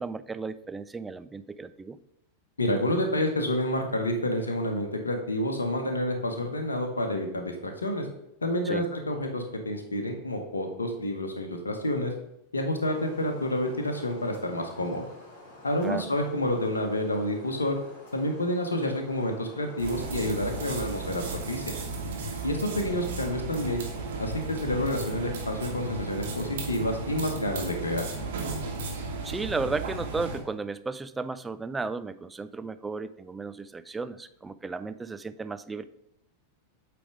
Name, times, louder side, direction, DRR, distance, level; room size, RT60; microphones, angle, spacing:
voice 1, 0.0-2.0 8.6-8.8 15.8-16.1 22.7-23.1 29.2-35.8, right 4 dB, 10° right, 13 dB, 0.3 m, -34 dB
voice 2, 2.6-8.1 8.4-12.1 12.5-15.0 15.6-17.8 18.1-21.7 22.4-23.8 24.2-28.1, left 1 dB, 75° left, 3 dB, 0.9 m, -29 dB
sound 1, 12.8-21.4, left 2 dB, 50° left, 2.7 m, -49 dB
sound 2, 19.8-30.4, right 3 dB, 60° right, 1.5 m, -35 dB
8.2 x 3.4 x 4.7 m, 0.81 s
figure-of-eight pair, 90°, 0 cm